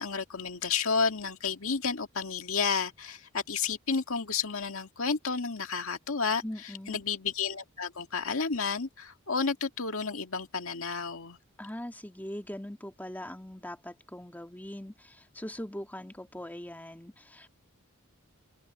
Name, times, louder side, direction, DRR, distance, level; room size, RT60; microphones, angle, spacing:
voice 1, 0.0-11.4, left 5 dB, 65° left, 2.1 m, -31 dB
voice 2, 6.4-7.0 11.6-17.5, left 1 dB, 10° left, 1.8 m, -41 dB
open air
head